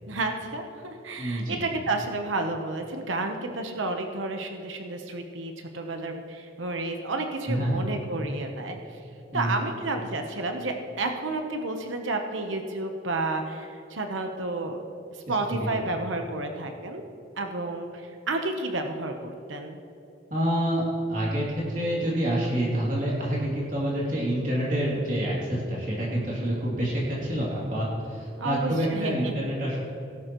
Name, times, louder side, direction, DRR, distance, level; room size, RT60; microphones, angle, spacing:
voice 1, 0.1-9.0 9.3-14.8 15.3-17.1 17.4-19.8 28.4-29.3, right 2 dB, 90° right, 5 dB, 1.0 m, -31 dB
voice 2, 1.2-1.6 7.5-7.8 9.3-9.5 15.3-15.4 15.7-15.8 20.3-20.8 21.1-29.8, equal, 45° right, -6 dB, 2.8 m, -27 dB
18.0 x 11.5 x 3.1 m, 2.8 s
head